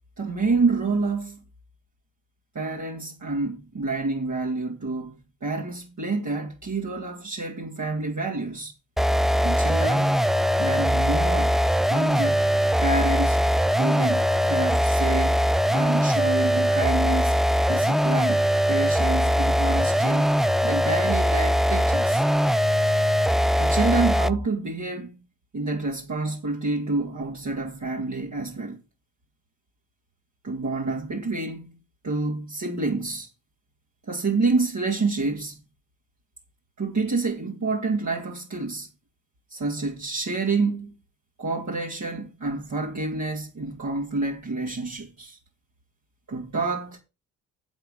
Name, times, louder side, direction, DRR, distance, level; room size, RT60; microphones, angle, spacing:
voice 1, 0.2-1.4 2.5-8.7 9.4-10.2 10.6-11.6 11.9-17.4 17.7-22.2 23.6-25.2 25.5-28.8 30.4-31.8 32.0-33.3 34.1-35.6 36.8-38.9 39.5-40.9 41.4-45.4 46.3-47.0, right 3 dB, 45° right, 3.0 m, -28 dB
sound 1, 9.0-24.5, equal, ahead, 0.4 m, -21 dB
8.1 x 8.0 x 5.4 m
hypercardioid pair, 45°, 41 cm